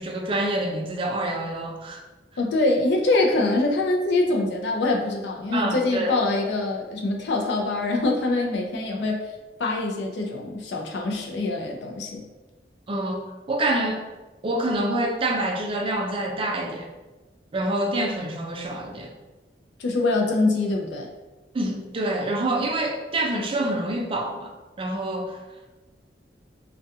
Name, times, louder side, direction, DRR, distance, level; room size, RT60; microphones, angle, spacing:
voice 1, 0.0-2.0 5.5-6.2 12.9-14.0 14.4-16.9 17.5-19.1 21.5-24.5 24.8-25.4, right 1 dB, 30° right, 1 dB, 0.3 m, -26 dB
voice 2, 2.4-9.2 9.6-12.2 19.8-21.1, left 2 dB, 70° left, 1 dB, 0.4 m, -24 dB
2.4 x 2.2 x 2.7 m, 1.2 s
head